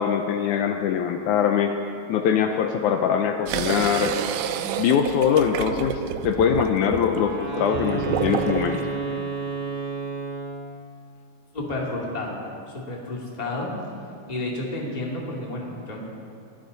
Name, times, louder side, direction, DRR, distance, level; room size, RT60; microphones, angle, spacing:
voice 1, 0.0-1.7 2.1-4.2 4.8-8.8, left 8 dB, 80° left, 5 dB, 2.0 m, -22 dB
sound 1, 3.5-8.8, right 10 dB, 80° right, 2.1 m, -29 dB
Wind instrument woodwind instrument, 7.1-10.8, right 3 dB, 55° right, 0.6 m, -31 dB
voice 2, 11.5-12.4 12.7-13.8 14.3-16.0, left 2 dB, 15° left, -3 dB, 2.0 m, -31 dB
24.0 x 14.5 x 4.1 m, 2.5 s
omnidirectional pair, 3.8 m